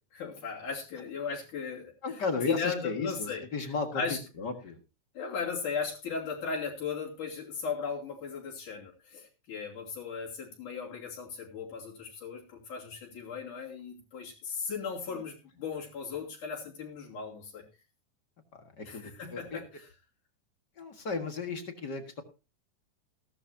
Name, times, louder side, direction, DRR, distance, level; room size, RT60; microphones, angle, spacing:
voice 1, 0.1-2.2 2.5-4.2 5.1-17.6 18.8-19.9, left 5 dB, 70° left, -3 dB, 4.3 m, -37 dB
voice 2, 2.0-4.0 4.4-4.8 15.1-15.2 18.8-19.6 20.8-22.2, left 4 dB, 40° left, 6 dB, 1.9 m, -34 dB
17.0 x 12.0 x 2.8 m, 0.30 s
omnidirectional pair, 3.7 m